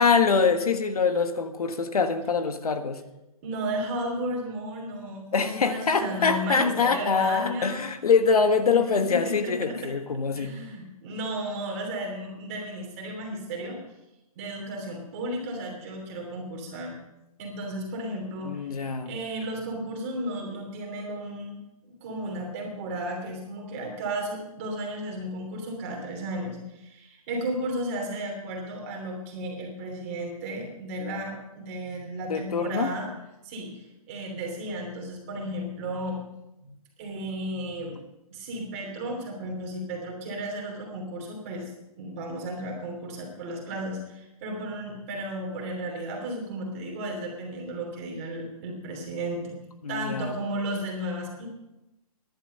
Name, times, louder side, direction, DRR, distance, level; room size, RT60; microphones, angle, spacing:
voice 1, 0.0-3.0 5.3-10.5 18.4-19.1 32.3-32.9 49.8-50.4, left 5 dB, 75° left, 8 dB, 1.6 m, -24 dB
voice 2, 3.4-7.9 8.6-13.8 14.3-17.0 17.4-21.6 22.0-33.1 33.4-36.2 36.6-36.7 37.0-38.0 38.3-41.7 42.0-49.5 49.9-51.5, right 1 dB, 20° right, 0 dB, 3.0 m, -34 dB
14.5 x 11.0 x 5.6 m, 0.94 s
hypercardioid pair, 175°, 19 cm